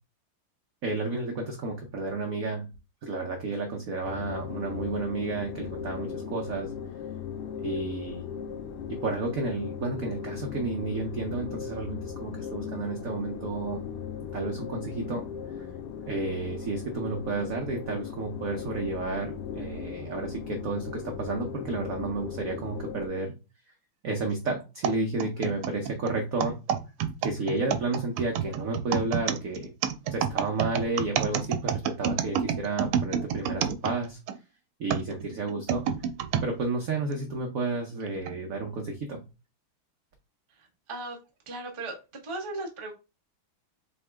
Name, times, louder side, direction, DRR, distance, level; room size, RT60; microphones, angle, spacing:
voice 1, 0.8-2.7 3.0-6.7 7.6-8.3 9.0-13.8 14.3-15.2 15.6-15.7 16.1-23.3 24.0-26.5 27.2-29.7 30.1-34.2 34.8-35.8 36.4-39.2, right 3 dB, 70° right, 2 dB, 0.8 m, -31 dB
sound 1, 4.0-23.1, left 8 dB, 90° left, 1.5 m, -38 dB
sound 2, 24.8-34.4 34.9-36.5 37.1-37.2 38.1-38.3, right 8 dB, 90° right, 1.5 m, -29 dB
voice 2, 41.5-41.9 42.2-42.9, right 2 dB, 30° right, 1 dB, 0.5 m, -36 dB
3.9 x 3.6 x 3.4 m, 0.29 s
omnidirectional pair, 2.4 m